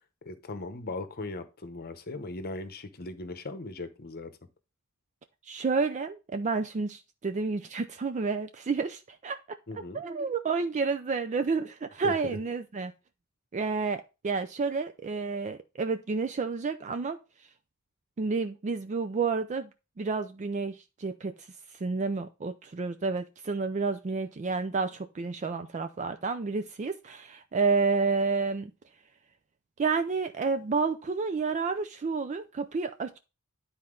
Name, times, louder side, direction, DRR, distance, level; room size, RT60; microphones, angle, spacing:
voice 1, 0.2-4.4 9.7-10.0 12.0-12.4, left 2 dB, 45° left, 0.9 m, -38 dB
voice 2, 5.5-9.6 9.9-12.9 13.5-17.2 18.2-19.7 20.0-21.3 21.8-28.7 29.8-33.2, right 4 dB, 35° right, 0.4 m, -30 dB
9.8 x 4.2 x 3.7 m
head